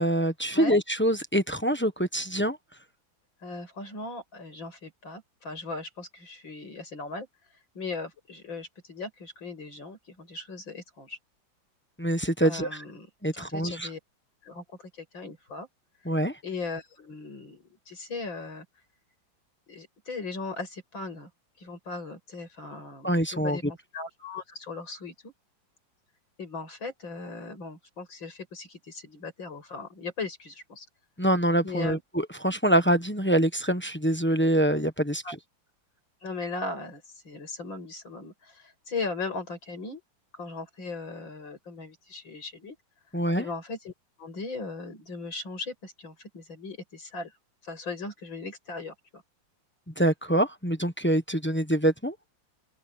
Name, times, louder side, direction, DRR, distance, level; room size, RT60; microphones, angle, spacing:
voice 1, 0.0-2.6 12.0-12.7 13.2-13.9 16.0-16.3 23.0-23.6 31.2-35.4 43.1-43.5 50.0-52.1, right 1 dB, 10° left, 0.8 m, -25 dB
voice 2, 3.4-7.3 7.8-11.2 12.4-14.0 14.4-15.7 16.4-18.7 19.7-21.3 21.6-25.3 26.4-30.9 31.6-32.0 35.2-35.4 36.2-40.0 40.3-42.8 43.4-43.9 44.2-47.3 47.6-49.2, left 3 dB, 75° left, 7.4 m, -38 dB
open air
omnidirectional pair, 2.1 m